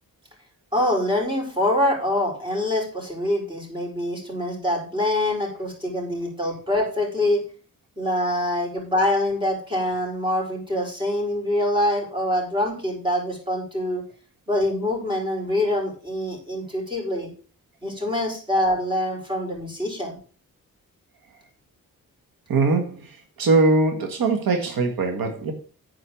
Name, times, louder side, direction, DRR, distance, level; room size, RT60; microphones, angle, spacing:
voice 1, 0.7-7.4 8.0-14.0 14.5-17.3 17.8-20.2, left 1 dB, 15° right, 4.7 m, -25 dB
voice 2, 22.5-23.1 23.4-25.5, right 3 dB, 80° right, 1.6 m, -21 dB
9.3 x 4.8 x 7.0 m
wide cardioid pair, 100°, 35 cm